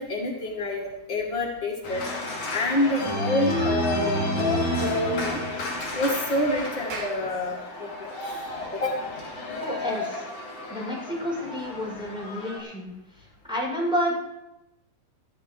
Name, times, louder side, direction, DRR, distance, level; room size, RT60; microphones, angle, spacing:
voice 1, 0.0-2.0 2.5-4.1 4.4-5.4 5.9-8.1 8.7-8.9, left 2 dB, 80° left, -2 dB, 1.0 m, -27 dB
Organ, 1.8-12.6, left 1 dB, 40° left, 7.3 m, -31 dB
Clapping, 6.9-11.6, right 3 dB, 55° right, 4.5 m, -44 dB
voice 2, 9.6-10.3 10.7-14.1, equal, ahead, -4 dB, 6.7 m, -30 dB
20.5 x 13.5 x 3.3 m, 0.91 s
omnidirectional pair, 5.4 m